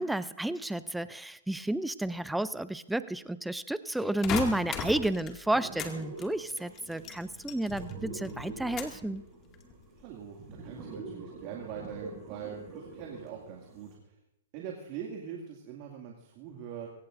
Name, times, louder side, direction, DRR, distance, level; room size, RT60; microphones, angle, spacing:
voice 1, 0.0-9.2, right 1 dB, 5° right, 14 dB, 0.5 m, -31 dB
sound 1, 4.2-5.9 6.2-8.0 8.2-9.1 9.5-10.0, left 7 dB, 30° left, 2.1 m, -37 dB
sound 2, 5.5-13.9, right 3 dB, 25° right, 6.4 m, -45 dB
voice 2, 10.0-14.0 14.5-16.9, right 8 dB, 40° right, 0 dB, 2.3 m, -42 dB
23.0 x 17.5 x 2.6 m, 0.89 s
hypercardioid pair, 125°, 0 cm